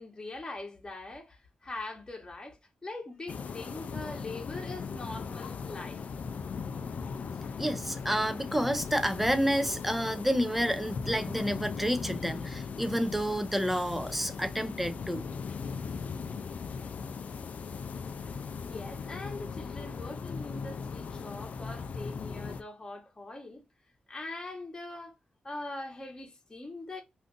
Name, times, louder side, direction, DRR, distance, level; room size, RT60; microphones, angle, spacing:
voice 1, 0.0-6.0 18.6-23.6 24.1-25.1 25.4-27.0, left 2 dB, 25° left, 1.0 m, -42 dB
sound 1, 3.3-22.6, left 5 dB, 60° left, 0.3 m, -38 dB
voice 2, 7.6-15.3, equal, 5° right, 0.5 m, -29 dB
2.5 x 2.4 x 3.7 m
cardioid pair, 85°, 3 cm